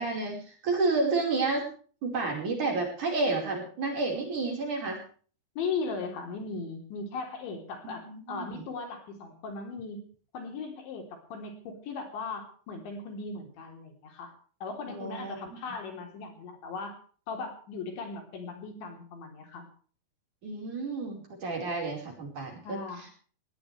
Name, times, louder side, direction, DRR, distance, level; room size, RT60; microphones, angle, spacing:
voice 1, 0.0-1.7 2.0-5.0 8.0-8.6 14.9-15.4 15.7-15.8 20.4-22.6, right 3 dB, 40° right, 1 dB, 6.2 m, -30 dB
voice 2, 5.6-10.1 10.3-14.3 14.6-17.0 17.3-19.7 22.6-23.1, left 4 dB, 70° left, 4 dB, 5.9 m, -38 dB
21.0 x 18.0 x 3.4 m, 0.42 s
omnidirectional pair, 5.5 m